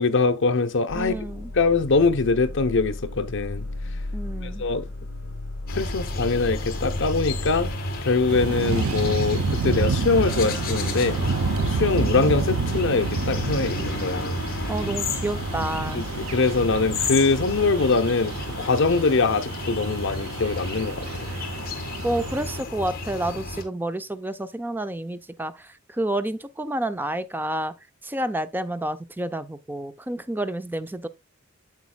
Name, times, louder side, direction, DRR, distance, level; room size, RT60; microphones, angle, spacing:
voice 1, 0.0-1.2 1.5-3.7 4.4-4.9 5.7-7.7 8.0-11.2 11.7-14.4 15.9-21.3, left 4 dB, 65° left, 0.8 m, -23 dB
sound 1, 0.9-7.8, left 2 dB, 80° left, 1.5 m, -35 dB
voice 2, 0.9-1.5 4.1-4.6 14.7-16.1 21.1-21.2 22.0-27.7 28.0-31.1, right 1 dB, 10° right, 0.5 m, -29 dB
sound 2, 5.7-23.6, left 2 dB, 45° left, 1.8 m, -32 dB
sound 3, 8.3-22.6, right 4 dB, 85° right, 0.6 m, -29 dB
9.3 x 7.2 x 2.3 m
head